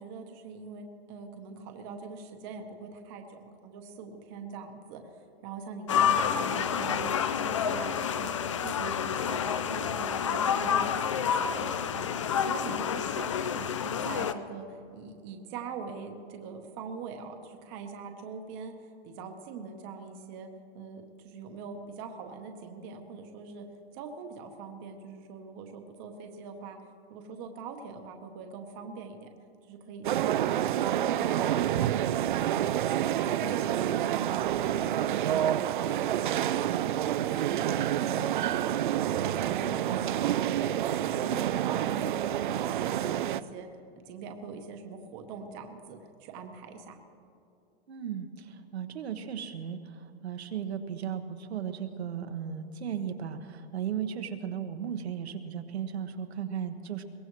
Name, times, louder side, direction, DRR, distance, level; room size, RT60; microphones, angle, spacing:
voice 1, 0.0-5.0 5.4-8.3 8.6-10.9 11.3-12.1 12.4-18.8 19.0-23.7 23.9-26.8 27.1-29.3 29.7-30.4 30.7-32.6 33.0-36.8 37.1-40.7 40.9-43.7 44.1-47.0, right 5 dB, 25° right, 5 dB, 0.9 m, -42 dB
sound 1, 5.9-14.3, left 8 dB, 30° left, 0.4 m, -29 dB
sound 2, 30.0-43.4, right 11 dB, 50° right, 0.4 m, -28 dB
voice 2, 47.9-57.0, right 8 dB, 80° right, 7 dB, 1.3 m, -36 dB
22.0 x 17.5 x 3.1 m, 2.5 s
hypercardioid pair, 170°, 32 cm